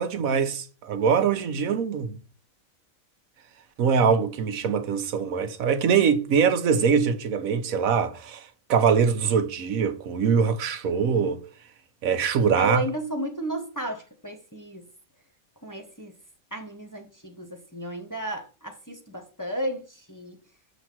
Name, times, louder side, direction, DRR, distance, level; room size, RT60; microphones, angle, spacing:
voice 1, 0.0-2.2 3.8-11.4 12.0-12.8, right 6 dB, 90° right, 1.3 m, -23 dB
voice 2, 12.6-14.9 15.6-16.2 16.5-20.4, right 1 dB, 15° left, 0.8 m, -33 dB
7.1 x 3.0 x 5.9 m
omnidirectional pair, 1.4 m